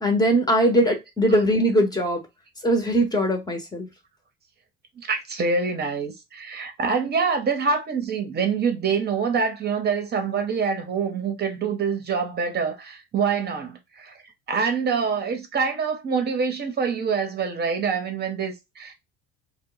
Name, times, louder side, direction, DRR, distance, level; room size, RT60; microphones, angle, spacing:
voice 1, 0.0-2.2 2.6-3.9, equal, 10° left, 0.8 m, -21 dB
voice 2, 5.0-14.2 14.5-18.9, right 5 dB, 30° right, 0.8 m, -25 dB
2.2 x 2.1 x 3.8 m
cardioid pair, 115°, 32 cm